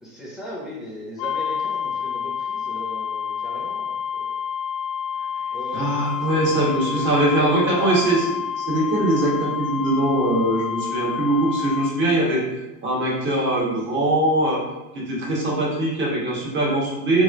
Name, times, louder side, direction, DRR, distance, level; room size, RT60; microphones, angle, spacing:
voice 1, 0.0-4.4 5.5-5.9 6.1-8.3, right 1 dB, ahead, -7 dB, 0.4 m, -37 dB
sound 1, 1.2-12.0, left 7 dB, 85° left, 0.8 m, -28 dB
voice 2, 5.7-8.2 8.6-12.5 12.8-14.6 14.9-17.2, right 1 dB, 25° right, -4 dB, 1.2 m, -21 dB
4.1 x 3.1 x 2.5 m, 1.0 s
supercardioid pair, 130°, 48 cm